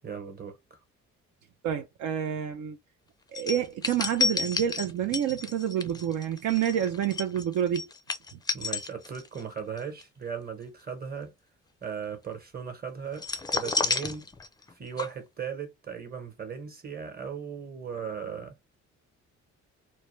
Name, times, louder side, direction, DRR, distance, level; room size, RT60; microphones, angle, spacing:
voice 1, 0.0-0.8 8.5-11.3 11.8-14.3 14.7-18.5, right 7 dB, 30° right, 1.1 m, -37 dB
voice 2, 1.6-2.8 3.3-7.9, right 10 dB, 70° right, 0.5 m, -28 dB
sound 1, 3.4-9.4 9.8-10.0 13.2-14.7 15.0-15.1, left 3 dB, 15° left, 0.4 m, -31 dB
2.2 x 2.1 x 3.1 m
cardioid pair, 90°, 30 cm